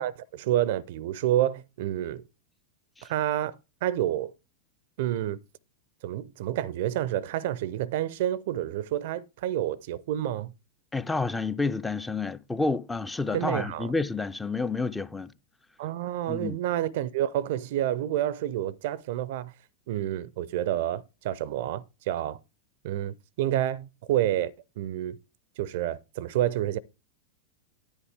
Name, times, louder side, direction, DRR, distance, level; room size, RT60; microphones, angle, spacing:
voice 1, 0.0-2.2 3.1-3.6 3.8-4.3 5.0-5.4 6.0-10.5 13.3-13.9 15.8-19.5 19.9-22.4 22.8-25.2 25.6-26.8, right 12 dB, 50° right, 0.5 m, -29 dB
voice 2, 10.9-15.3 16.3-16.6, left 3 dB, 10° left, 0.4 m, -29 dB
10.5 x 9.4 x 3.4 m
figure-of-eight pair, 90°, 0 cm